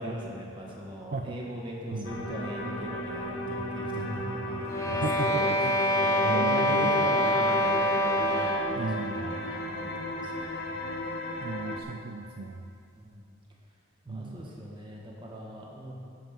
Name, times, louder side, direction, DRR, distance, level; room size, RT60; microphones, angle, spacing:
voice 1, 0.0-5.5 6.0-10.8 12.9-13.3 14.0-15.9, equal, 25° right, -3 dB, 1.6 m, -39 dB
sound 1, 2.0-11.8, left 1 dB, 75° left, 1.3 m, -36 dB
sound 2, 4.7-8.8, left 1 dB, 15° left, 0.6 m, -25 dB
voice 2, 4.9-5.7 6.0-7.1 8.7-9.2 11.4-12.7 14.1-14.4, right 3 dB, 50° right, 4 dB, 0.4 m, -35 dB
11.5 x 5.4 x 7.3 m, 2.5 s
head